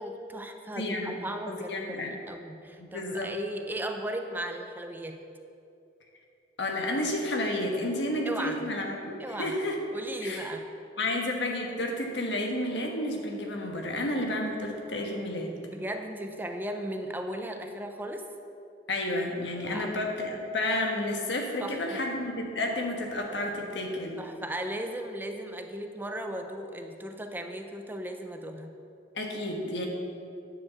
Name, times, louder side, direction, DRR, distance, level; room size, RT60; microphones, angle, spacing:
voice 1, 0.0-5.2 8.2-8.7 9.2-9.6 9.9-10.7 15.7-18.3 19.7-19.9 21.6-22.0 24.2-28.7, right 1 dB, 10° right, 5 dB, 0.5 m, -36 dB
voice 2, 0.7-1.2 1.5-2.1 2.8-3.3 6.6-9.8 10.2-10.4 11.0-15.6 18.9-24.2 29.1-29.9, left 1 dB, 90° left, 1 dB, 1.3 m, -31 dB
9.7 x 4.9 x 6.9 m, 2.6 s
head